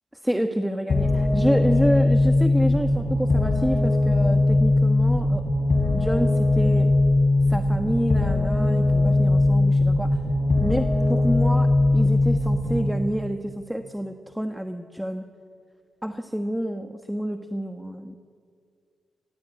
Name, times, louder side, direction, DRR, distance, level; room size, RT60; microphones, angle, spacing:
voice 1, 0.2-5.4 5.9-6.9 7.5-10.2 10.6-15.2 16.0-18.2, equal, ahead, 7 dB, 1.3 m, -28 dB
sound 1, 0.9-12.9, left 2 dB, 50° left, 4.9 m, -20 dB
24.5 x 20.0 x 9.0 m, 2.2 s
cardioid pair, 70°, 0 cm